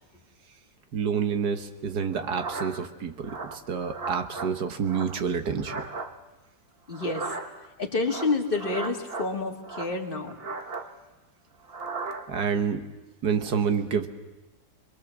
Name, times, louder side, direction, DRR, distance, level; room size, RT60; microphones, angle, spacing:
voice 1, 0.9-5.7 12.3-12.9 13.2-14.1, right 6 dB, 70° right, 8 dB, 1.8 m, -28 dB
sound 1, 2.1-2.9 3.2-4.5 4.8-6.1 6.9-7.7 8.0-9.3 9.6-10.9 11.6-12.3, right 4 dB, 40° right, 1.3 m, -37 dB
voice 2, 6.9-7.3 7.8-10.4, left 3 dB, 30° left, 1 dB, 2.1 m, -28 dB
26.0 x 22.0 x 7.1 m, 1.1 s
omnidirectional pair, 1.8 m